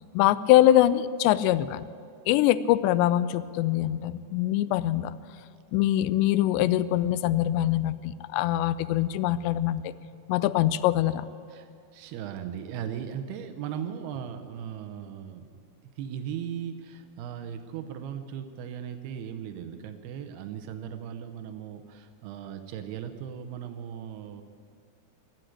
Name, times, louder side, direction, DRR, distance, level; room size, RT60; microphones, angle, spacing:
voice 1, 0.1-1.8 2.3-5.1 5.7-9.9 10.3-11.2, left 13 dB, 90° left, 16 dB, 2.8 m, -23 dB
voice 2, 11.5-15.7 16.0-24.4, right 8 dB, 75° right, 8 dB, 2.6 m, -38 dB
15.5 x 9.0 x 10.0 m, 2.4 s
omnidirectional pair, 5.0 m